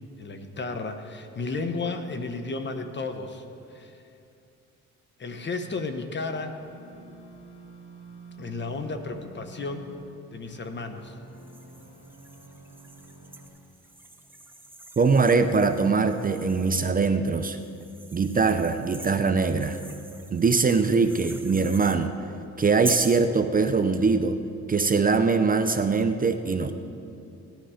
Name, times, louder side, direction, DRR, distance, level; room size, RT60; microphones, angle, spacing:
voice 1, 0.2-3.4 3.7-4.0 5.2-6.5 8.4-9.9 10.3-11.2, left 3 dB, 35° left, 7 dB, 1.1 m, -33 dB
sound 1, 6.6-10.1 10.4-13.5, right 2 dB, 70° left, 3.2 m, -48 dB
sound 2, 11.3-16.9 17.5-22.0 22.8-23.3, right 2 dB, 5° right, 0.9 m, -42 dB
voice 2, 15.0-17.6 18.1-19.8 20.3-22.1 22.6-24.4 24.7-26.7, right 4 dB, 30° right, 8 dB, 0.6 m, -22 dB
16.5 x 10.5 x 5.0 m, 2.6 s
cardioid pair, 90°, 30 cm